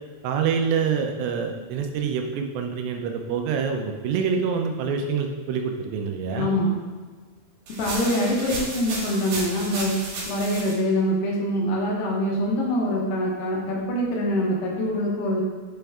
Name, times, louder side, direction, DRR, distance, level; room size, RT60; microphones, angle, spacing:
voice 1, 0.2-6.6 8.5-8.6, right 6 dB, 80° right, 4 dB, 2.8 m, -26 dB
voice 2, 6.3-6.7 7.8-9.9 10.3-15.4, equal, 75° left, -2 dB, 3.0 m, -24 dB
sound 1, 7.7-10.7, right 2 dB, 60° right, 2.4 m, -33 dB
9.2 x 4.4 x 3.5 m, 1.5 s
omnidirectional pair, 5.0 m